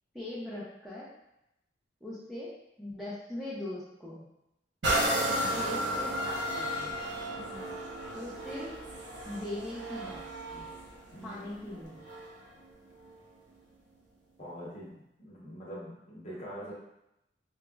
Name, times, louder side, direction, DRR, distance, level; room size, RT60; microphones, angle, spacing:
voice 1, 0.1-1.1 2.0-2.5 2.8-4.2 5.5-6.9 8.1-8.8 9.3-10.2 10.5-10.7 11.2-12.0, left 1 dB, ahead, -8 dB, 0.5 m, -40 dB
sound 1, 4.8-12.4 13.0-13.1, right 1 dB, 80° right, 0.7 m, -33 dB
voice 2, 5.2-5.6 7.4-7.7 11.1-11.5 14.4-14.9 15.2-16.7, equal, 40° left, -6 dB, 0.9 m, -44 dB
4.8 x 2.0 x 2.3 m, 0.85 s
head